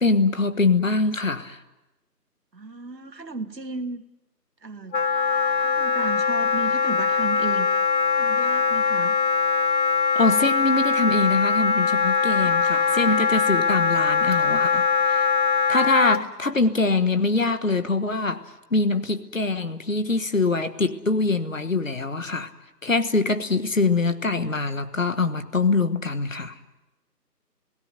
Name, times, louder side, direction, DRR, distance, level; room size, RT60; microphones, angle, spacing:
voice 1, 0.0-1.6 10.1-15.3 15.7-22.5 22.8-26.6, left 3 dB, 50° left, 1.4 m, -24 dB
voice 2, 2.5-4.0 4.6-5.0 5.6-7.8 8.1-9.2 12.4-12.6, right 3 dB, 80° right, 2.2 m, -34 dB
Wind instrument woodwind instrument, 4.9-16.2, left 5 dB, 90° left, 0.9 m, -22 dB
sound 1, 14.3-14.7 15.2-15.4 16.1-16.4 16.7-16.8 17.3-17.4 18.5-18.6, right 3 dB, 25° right, 3.4 m, -49 dB
29.5 x 17.5 x 9.0 m
figure-of-eight pair, 175°, 49 cm